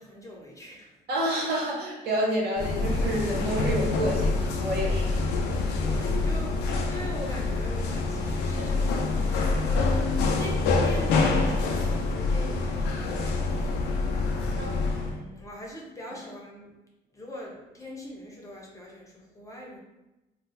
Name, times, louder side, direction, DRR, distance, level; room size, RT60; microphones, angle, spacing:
voice 1, 0.0-0.9 5.8-14.7 14.9-16.8 17.1-19.8, left 2 dB, 20° left, -3 dB, 0.8 m, -41 dB
voice 2, 1.1-5.2 14.6-14.8, right 1 dB, 70° right, -4 dB, 1.1 m, -29 dB
sound 1, 2.6-15.2, left 3 dB, 85° left, 0.5 m, -26 dB
3.6 x 2.4 x 2.6 m, 1.0 s
cardioid pair, 110°, 17 cm